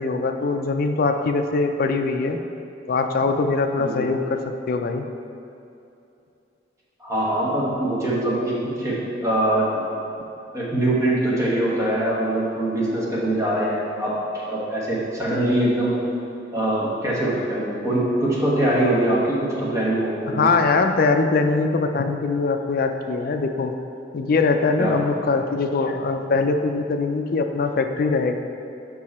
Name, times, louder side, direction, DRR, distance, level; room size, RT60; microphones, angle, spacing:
voice 1, 0.0-2.4 2.9-4.4 4.7-5.1 20.3-23.7 24.1-28.4, left 3 dB, 50° left, 6 dB, 0.4 m, -22 dB
voice 2, 7.0-9.7 10.5-14.2 14.5-15.9 16.5-20.5 24.8-25.0, right 1 dB, 15° right, -6 dB, 1.1 m, -23 dB
5.7 x 4.6 x 4.2 m, 2.7 s
head